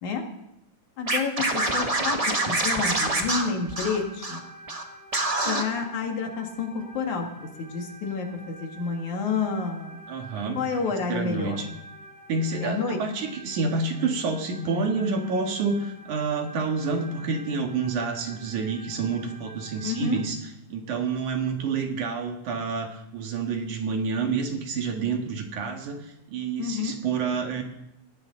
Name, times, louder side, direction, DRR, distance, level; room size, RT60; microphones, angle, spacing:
voice 1, 1.0-4.4 5.5-10.0 10.6-11.6 12.6-13.0 19.8-20.2 26.6-26.9, left 5 dB, 75° left, 2 dB, 3.4 m, -29 dB
Scratching (performance technique), 1.1-4.4 4.7-4.8 5.1-5.6, right 2 dB, 30° right, 0.6 m, -26 dB
sound 1, 2.2-20.2, right 2 dB, 35° left, 4.2 m, -47 dB
voice 2, 10.1-10.6 10.9-11.7 12.3-20.4 20.7-27.6, right 4 dB, 80° right, 3 dB, 3.3 m, -28 dB
17.5 x 16.5 x 3.9 m, 0.85 s
omnidirectional pair, 3.4 m